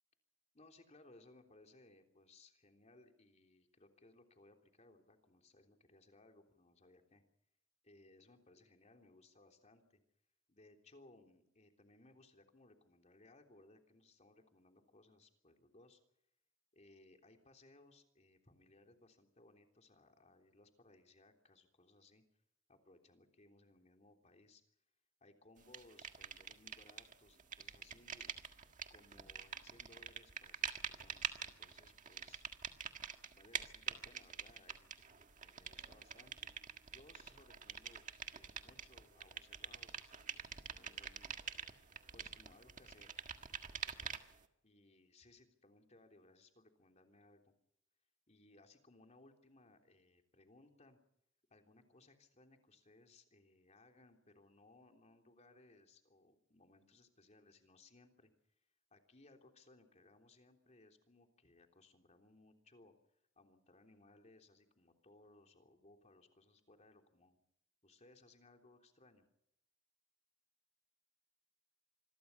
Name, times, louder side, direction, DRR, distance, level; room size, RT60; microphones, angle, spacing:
voice 1, 0.5-7.2 7.8-10.0 10.5-16.0 16.7-22.2 22.7-24.6 25.2-28.3 28.9-32.4 33.3-36.5 36.9-38.0 38.3-41.4 42.1-43.2 43.9-44.2 44.6-47.5 48.3-51.0 51.5-58.3 58.9-62.9 63.4-67.4 67.8-69.3, left 2 dB, 35° left, 4 dB, 3.4 m, -65 dB
sound 1, 25.7-27.1 27.4-44.4, right 7 dB, 40° right, 1.7 m, -46 dB
26.5 x 21.5 x 5.7 m, 0.77 s
head